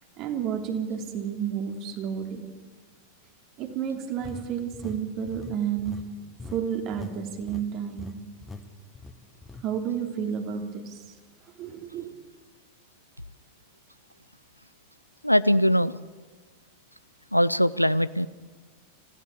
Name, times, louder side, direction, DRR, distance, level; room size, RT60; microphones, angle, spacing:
voice 1, 0.2-2.4 3.6-6.0 6.5-8.2 9.6-11.0 11.6-12.1, right 8 dB, 40° right, 5 dB, 2.9 m, -31 dB
sound 1, 4.2-7.2 7.4-7.7 8.0-8.1 8.4-8.6 9.0-9.6, left 3 dB, 10° left, 1.6 m, -42 dB
voice 2, 15.2-16.0 17.3-18.3, equal, 90° left, 18 dB, 0.6 m, -21 dB
26.0 x 16.0 x 7.0 m, 1.4 s
figure-of-eight pair, 90°, 0 cm